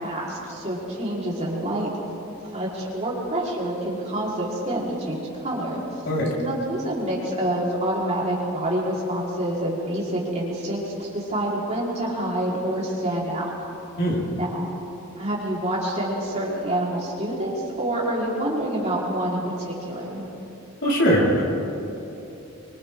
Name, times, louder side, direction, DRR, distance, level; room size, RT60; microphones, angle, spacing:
voice 1, 0.0-1.9 2.5-5.8 6.4-13.5 14.3-14.7 15.2-20.2, right 1 dB, 35° right, -5 dB, 4.6 m, -27 dB
voice 2, 20.8-21.4, equal, 60° left, -5 dB, 5.3 m, -20 dB
28.0 x 24.5 x 3.9 m, 3.0 s
head